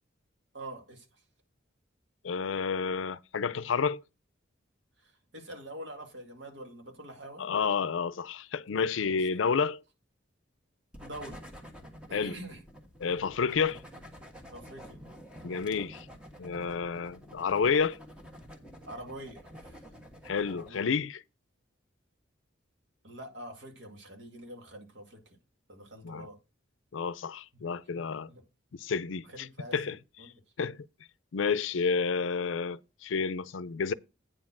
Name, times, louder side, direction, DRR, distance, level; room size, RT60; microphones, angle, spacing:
voice 1, 0.5-1.1 5.0-7.5 8.8-8.9 9.3-9.4 11.0-11.4 12.1-12.6 14.5-15.0 18.9-19.8 20.5-20.9 23.0-25.2 25.7-26.4 28.3-28.4 29.3-30.3, right 1 dB, 70° right, 2.2 m, -45 dB
voice 2, 2.2-4.0 7.4-9.8 12.1-12.4 13.0-13.8 15.4-16.1 16.4-18.0 20.2-21.2 26.0-26.3 26.9-28.3 28.7-29.5 29.7-30.0 30.2-30.3 30.6-30.8 31.3-33.9, left 5 dB, 80° left, 0.5 m, -30 dB
sound 1, 10.9-20.7, equal, 5° right, 1.4 m, -49 dB
9.0 x 4.4 x 5.9 m
head